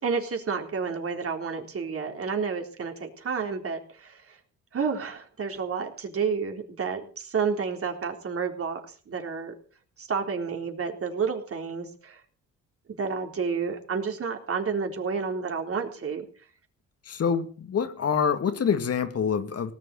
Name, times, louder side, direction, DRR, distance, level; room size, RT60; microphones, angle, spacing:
voice 1, 0.0-4.4 4.7-9.5 10.0-12.2 13.0-16.3, right 5 dB, 50° right, 3.9 m, -30 dB
voice 2, 17.1-19.7, left 7 dB, 55° left, 2.1 m, -26 dB
18.5 x 7.8 x 7.8 m
cardioid pair, 90°, 30 cm